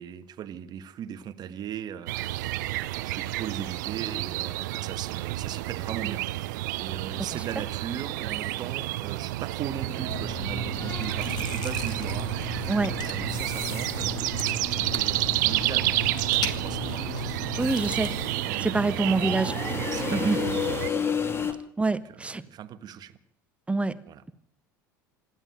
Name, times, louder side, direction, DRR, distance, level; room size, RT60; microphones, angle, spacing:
voice 1, 0.0-19.6 19.9-21.6 21.9-23.2 24.1-24.2, right 9 dB, 40° right, 1.5 m, -39 dB
sound 1, 2.1-20.9, right 17 dB, 65° right, 0.9 m, -30 dB
sound 2, 9.9-21.5, left 6 dB, 25° left, 2.5 m, -35 dB
Chewing mastication, 10.1-18.2, left 10 dB, 40° left, 2.0 m, -37 dB
voice 2, 17.6-18.1 18.6-19.5 20.1-20.4 21.8-22.4 23.7-23.9, right 3 dB, 10° right, 1.3 m, -25 dB
26.0 x 11.0 x 9.3 m
figure-of-eight pair, 75°, 11 cm